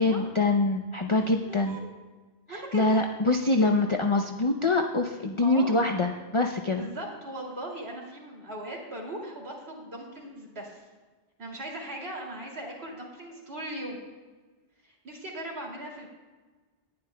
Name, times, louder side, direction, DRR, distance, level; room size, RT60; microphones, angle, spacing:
voice 1, 0.0-1.8 2.5-6.9, left 2 dB, 35° left, 3 dB, 0.6 m, -25 dB
voice 2, 1.1-1.9 2.5-3.1 3.6-3.7 5.4-5.8 6.7-10.8 11.4-14.0 14.8-16.1, right 1 dB, 60° right, -1 dB, 2.9 m, -39 dB
19.5 x 11.5 x 2.2 m, 1.3 s
omnidirectional pair, 1.2 m